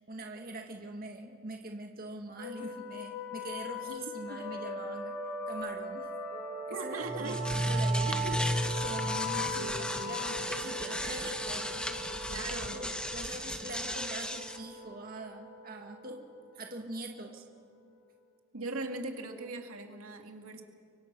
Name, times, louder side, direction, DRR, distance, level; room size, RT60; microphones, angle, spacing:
voice 1, 0.0-5.2 5.5-6.1 6.7-8.1 8.8-12.3 12.7-16.2 16.5-17.4, right 2 dB, 45° right, 3 dB, 2.0 m, -43 dB
sound 1, 2.4-17.7, equal, 70° left, 7.4 m, -40 dB
voice 2, 6.7-7.4 8.1-8.4 9.4-10.1 12.3-12.8 18.5-20.6, right 2 dB, 85° right, 4 dB, 2.4 m, -40 dB
sound 2, 7.0-14.6, equal, 5° left, 1.1 m, -34 dB
30.0 x 24.0 x 6.3 m, 2.3 s
head